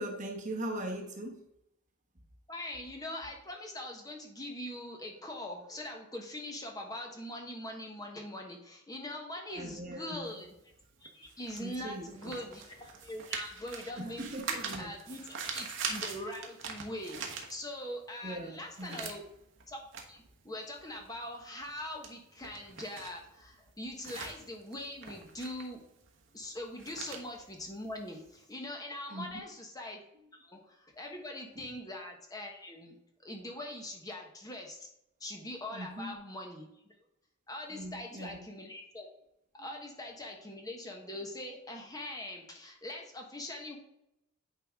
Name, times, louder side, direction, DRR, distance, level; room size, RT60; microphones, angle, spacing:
voice 1, 0.0-1.4 9.5-10.3 11.6-12.4 14.0-14.9 18.2-19.1 29.1-29.4 35.7-36.2 37.7-38.5, right 1 dB, 40° right, 2 dB, 1.1 m, -40 dB
voice 2, 2.5-10.5 11.0-14.2 14.8-19.2 19.7-19.8 20.1-25.8 26.3-30.0 30.4-34.9 35.2-36.7 37.5-39.1 39.5-43.8, left 1 dB, 20° left, 2 dB, 1.2 m, -42 dB
sound 1, 10.3-18.0 18.4-28.4, right 5 dB, 65° right, 1.2 m, -43 dB
8.8 x 4.8 x 3.7 m, 0.81 s
head